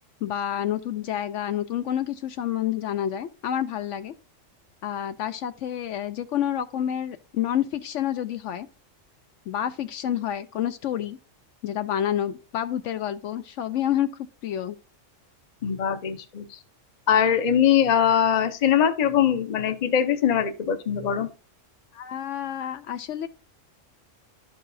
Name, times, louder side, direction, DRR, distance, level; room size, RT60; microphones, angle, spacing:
voice 1, 0.2-4.1 4.8-8.7 9.5-11.2 11.6-14.1 14.4-14.8 21.9-23.3, left 10 dB, 70° left, 0.9 m, -28 dB
voice 2, 15.6-16.4 17.1-21.3, left 9 dB, 40° left, 0.7 m, -22 dB
11.5 x 4.7 x 2.6 m
omnidirectional pair, 1.3 m